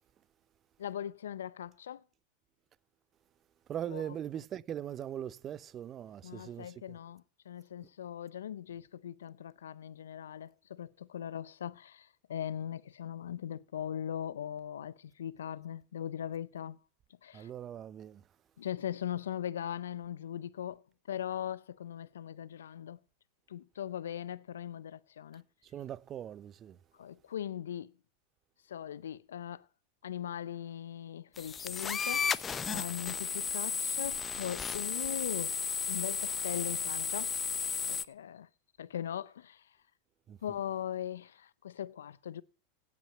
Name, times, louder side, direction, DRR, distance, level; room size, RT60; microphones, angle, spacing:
voice 1, 0.8-2.0 3.9-4.0 6.2-16.8 17.2-17.5 18.6-20.8 21.1-23.0 23.5-25.4 27.0-27.9 28.7-29.6 30.0-35.5 35.9-37.3 37.9-38.5 38.8-39.6 40.4-42.4, left 10 dB, 80° left, 0.5 m, -40 dB
voice 2, 3.7-6.8 17.3-18.2 25.6-26.8 40.3-40.4, right 10 dB, 35° right, 0.5 m, -40 dB
sound 1, 31.4-38.1, left 6 dB, 25° left, 0.7 m, -34 dB
16.5 x 6.1 x 7.3 m
hypercardioid pair, 95°, 0 cm